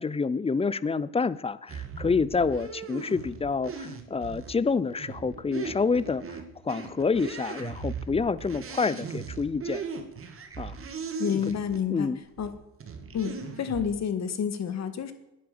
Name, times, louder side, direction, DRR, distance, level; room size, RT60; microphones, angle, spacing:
voice 1, 0.0-6.4 6.6-9.8 10.6-10.8 11.3-11.5 11.9-12.2, left 4 dB, 15° left, 18 dB, 0.5 m, -28 dB
sound 1, 1.7-11.9 12.4-13.9, right 5 dB, 40° right, 2.0 m, -38 dB
voice 2, 11.2-12.1 12.4-12.5 13.1-15.1, left 7 dB, 50° left, 11 dB, 1.6 m, -29 dB
9.9 x 9.4 x 6.8 m, 0.93 s
cardioid pair, 100°, 35 cm